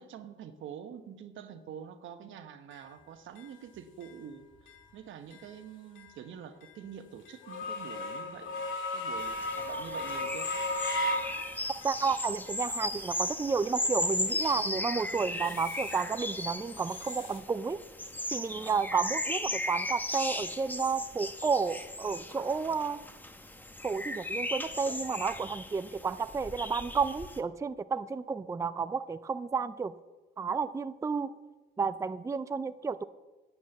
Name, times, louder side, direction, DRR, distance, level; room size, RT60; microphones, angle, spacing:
voice 1, 0.0-4.5 4.9-10.5, right 8 dB, 75° right, 8 dB, 1.1 m, -46 dB
sound 1, 2.7-2.8 3.4-3.5 4.0-4.1 4.7-4.8 5.3-5.5 6.0-6.1 6.6-6.7 7.3-12.0 12.5-13.3 13.8-14.7 15.1-16.1 16.4-17.4, left 1 dB, 75° left, 2.1 m, -37 dB
sound 2, 9.2-27.4, left 1 dB, 10° left, 0.9 m, -36 dB
voice 2, 11.8-17.8 18.3-23.0 23.8-29.9 30.4-31.3 31.8-33.0, right 5 dB, 15° right, 12 dB, 0.4 m, -31 dB
10.0 x 8.5 x 7.1 m, 1.2 s
cardioid pair, 90°, 20 cm